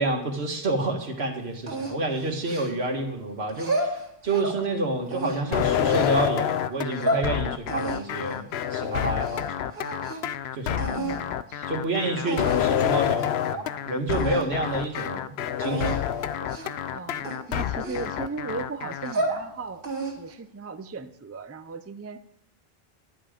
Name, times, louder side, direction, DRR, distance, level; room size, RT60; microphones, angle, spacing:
voice 1, 0.0-9.7 10.5-11.1 11.7-16.1 16.4-16.5, right 2 dB, 85° right, 3 dB, 1.9 m, -29 dB
sound 1, 1.7-3.0 3.5-4.6 5.1-6.2 6.7-7.3 7.7-9.4 9.7-10.3 10.8-11.2 11.9-12.0 12.3-12.8 13.2-13.3 13.5-13.7 14.1-14.5 14.8-15.1 15.6-16.0 16.5-16.8 17.2-18.4 18.9-19.4 19.8-20.3, right 1 dB, 65° right, 2.4 m, -31 dB
sound 2, 5.5-19.1, left 10 dB, 85° left, 0.8 m, -28 dB
voice 2, 11.0-11.8 14.6-14.8 16.9-19.8 20.2-22.2, right 4 dB, 20° right, 10 dB, 0.4 m, -37 dB
11.0 x 10.0 x 5.0 m, 0.74 s
omnidirectional pair, 1.0 m